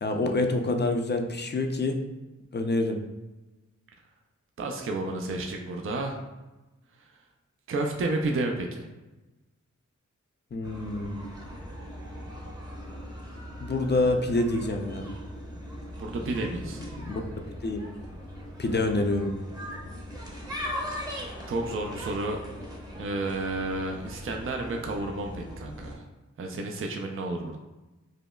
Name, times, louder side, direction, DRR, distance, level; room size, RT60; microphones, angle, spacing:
voice 1, 0.0-2.0 2.5-3.0 10.5-11.2 13.6-15.1 17.1-17.2 17.6-17.8 18.6-19.3, left 2 dB, 35° left, 5 dB, 0.4 m, -26 dB
voice 2, 4.6-6.2 7.0-7.1 7.7-8.9 16.0-16.8 21.5-22.4 23.0-26.1 26.4-27.6, right 2 dB, 45° right, 2 dB, 0.4 m, -31 dB
sound 1, 10.6-26.0, equal, 10° right, 0.7 m, -40 dB
5.1 x 2.0 x 2.2 m, 1.1 s
wide cardioid pair, 65°, 30 cm